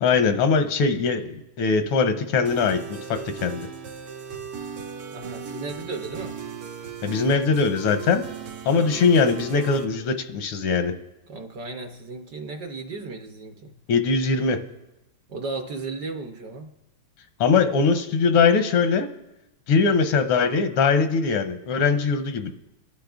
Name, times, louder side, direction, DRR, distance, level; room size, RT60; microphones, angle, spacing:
voice 1, 0.0-3.7 7.0-8.2 8.6-10.9 13.9-14.6 17.4-19.1 19.7-22.5, left 5 dB, 85° left, 8 dB, 1.7 m, -21 dB
sound 1, 2.5-9.8, right 7 dB, 80° right, 2.0 m, -37 dB
voice 2, 5.1-6.4 11.3-13.8 15.3-16.7, right 3 dB, 65° right, 4 dB, 1.1 m, -35 dB
26.5 x 11.5 x 2.4 m, 0.96 s
omnidirectional pair, 2.4 m